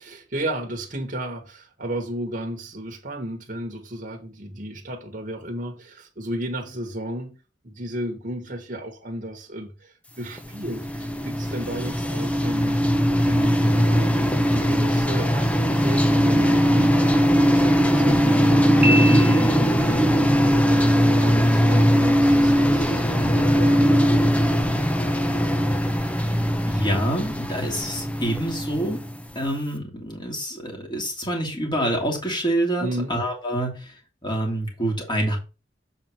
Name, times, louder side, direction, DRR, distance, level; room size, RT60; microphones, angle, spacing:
voice 1, 0.0-7.4 7.6-12.8 13.2-14.1 14.5-17.0 17.5-24.4 32.8-33.2, right 1 dB, 45° right, 1.5 m, -33 dB
sound 1, 10.4-29.4, equal, 5° left, 0.8 m, -20 dB
Piano, 18.8-19.9, equal, 10° right, 1.4 m, -26 dB
voice 2, 26.7-29.0 29.3-33.9 34.2-35.4, right 1 dB, 25° left, 2.7 m, -26 dB
7.9 x 4.4 x 4.8 m
head